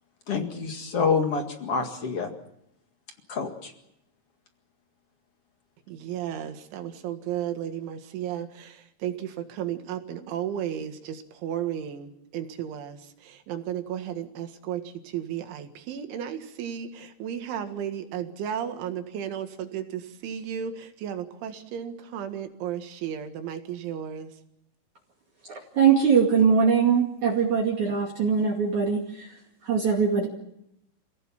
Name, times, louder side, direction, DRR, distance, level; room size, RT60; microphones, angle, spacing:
voice 1, 0.3-2.3 3.3-3.7, left 5 dB, 45° left, 4 dB, 2.0 m, -27 dB
voice 2, 5.9-24.3, right 9 dB, 80° right, 7 dB, 4.2 m, -34 dB
voice 3, 25.5-29.3 29.6-30.3, right 6 dB, 45° right, -2 dB, 3.2 m, -22 dB
27.5 x 17.5 x 7.3 m, 0.81 s
omnidirectional pair, 5.4 m